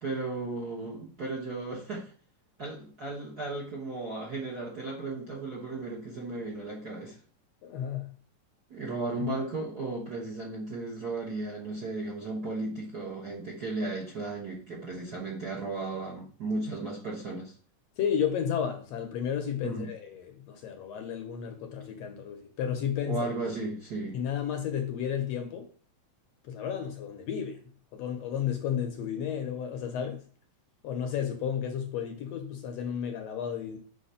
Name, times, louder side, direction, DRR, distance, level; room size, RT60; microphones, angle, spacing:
voice 1, 0.0-2.1 2.6-7.2 8.7-17.5 19.6-19.9 23.1-24.2, right 2 dB, 50° right, 1.2 m, -35 dB
voice 2, 7.6-8.1 9.2-9.3 18.0-23.3 24.1-25.7 26.4-30.2 30.8-33.8, left 8 dB, 70° left, 1.7 m, -32 dB
6.5 x 3.0 x 5.6 m
omnidirectional pair, 3.4 m